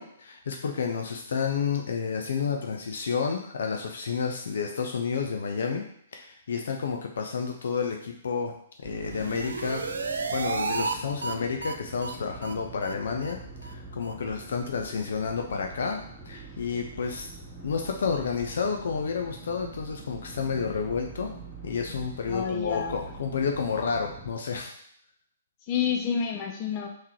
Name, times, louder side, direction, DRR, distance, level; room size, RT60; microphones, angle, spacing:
voice 1, 0.0-5.8 6.1-8.5 8.8-9.8 10.3-16.0 16.3-17.3 17.6-21.3 21.6-24.7, left 5 dB, 70° left, 3 dB, 0.6 m, -30 dB
sound 1, 8.8-24.3, right 3 dB, ahead, 1.8 m, -45 dB
sound 2, 8.9-11.0 11.2-11.3 11.6-11.7 12.0-12.1 12.4-12.5 12.8-12.9 13.2-13.3 13.6-13.7 14.0-14.1, right 4 dB, 80° right, 0.5 m, -32 dB
voice 2, 22.3-23.0 25.7-26.9, left 7 dB, 35° left, 2 dB, 0.8 m, -29 dB
3.7 x 3.2 x 4.4 m, 0.68 s
hypercardioid pair, 130°, 0 cm